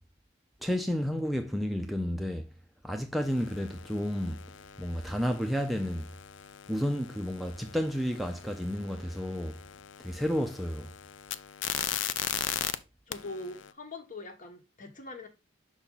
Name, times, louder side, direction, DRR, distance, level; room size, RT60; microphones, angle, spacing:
voice 1, 0.6-2.5 2.8-4.4 4.8-6.1 6.7-9.6 10.0-10.9, equal, ahead, 0.4 m, -31 dB
sound 1, 3.2-12.7 13.1-13.7, left 10 dB, 75° left, 0.4 m, -39 dB
voice 2, 13.1-15.3, left 2 dB, 45° left, 1.2 m, -42 dB
6.1 x 4.2 x 3.7 m
head